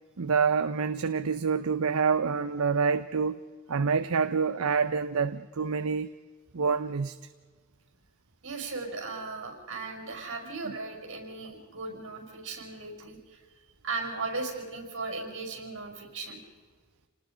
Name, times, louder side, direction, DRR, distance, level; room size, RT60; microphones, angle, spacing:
voice 1, 0.2-3.4 3.7-6.1 6.5-7.2, right 5 dB, 75° right, 11 dB, 0.7 m, -27 dB
voice 2, 8.4-13.4 13.8-16.4, right 3 dB, 60° right, 3 dB, 5.8 m, -37 dB
28.5 x 19.0 x 5.1 m, 1.5 s
head